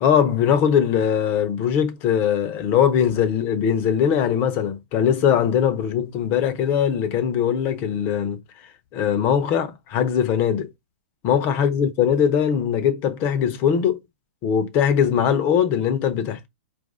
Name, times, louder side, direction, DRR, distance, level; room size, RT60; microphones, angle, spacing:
voice 1, 0.0-8.4 8.9-10.7 11.2-14.0 14.4-16.5, left 8 dB, 35° left, 0.8 m, -21 dB
4.6 x 2.6 x 3.6 m
hypercardioid pair, 125°, 6 cm